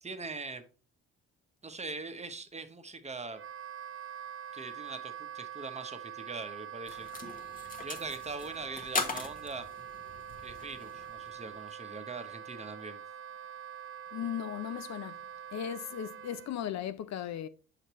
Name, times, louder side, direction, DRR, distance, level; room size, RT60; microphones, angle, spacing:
voice 1, 0.0-0.6 1.6-3.4 4.5-7.1 7.8-9.7 10.4-13.0, right 3 dB, 20° right, 0.9 m, -42 dB
Wind instrument woodwind instrument, 3.3-16.5, right 9 dB, 45° right, 0.4 m, -44 dB
sound 1, 6.9-11.6, left 3 dB, 30° left, 1.2 m, -40 dB
voice 2, 14.1-15.2 15.5-17.5, left 10 dB, 60° left, 0.5 m, -37 dB
6.4 x 5.8 x 3.0 m
cardioid pair, 90°, 30 cm